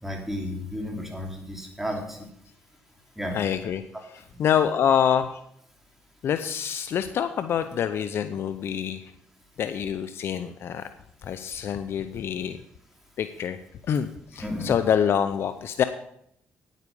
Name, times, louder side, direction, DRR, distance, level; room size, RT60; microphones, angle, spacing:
voice 1, 0.0-2.2 3.2-3.4 14.4-14.8, left 1 dB, 5° right, 1 dB, 3.0 m, -32 dB
voice 2, 3.3-5.4 6.2-9.1 9.6-10.9 11.2-12.6 13.2-13.6 13.8-15.8, left 8 dB, 65° left, 10 dB, 0.6 m, -26 dB
9.8 x 9.3 x 5.3 m, 0.72 s
cardioid pair, 85°, 4 cm